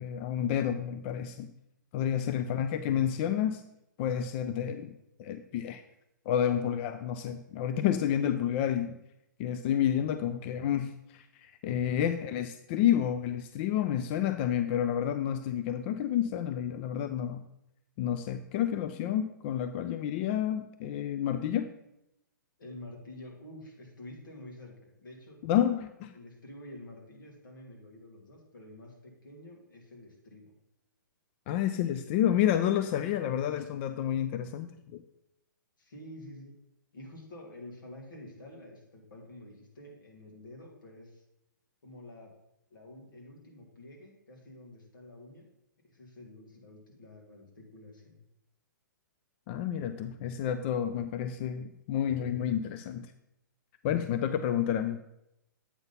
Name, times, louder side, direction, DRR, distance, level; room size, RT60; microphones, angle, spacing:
voice 1, 0.0-1.5 1.9-3.6 4.0-4.9 5.2-5.8 6.3-9.0 9.4-17.4 18.0-21.7 25.4-26.1 31.5-35.0 49.5-53.1 53.8-55.0, left 10 dB, 35° left, 10 dB, 0.4 m, -30 dB
voice 2, 2.1-2.5 11.7-11.9 22.6-25.4 26.1-30.5 35.8-36.6 36.9-41.2 41.8-42.3 42.7-45.5 45.9-48.2, left 1 dB, 75° left, 0 dB, 2.4 m, -49 dB
8.1 x 4.0 x 5.5 m, 0.84 s
hypercardioid pair, 130°, 11 cm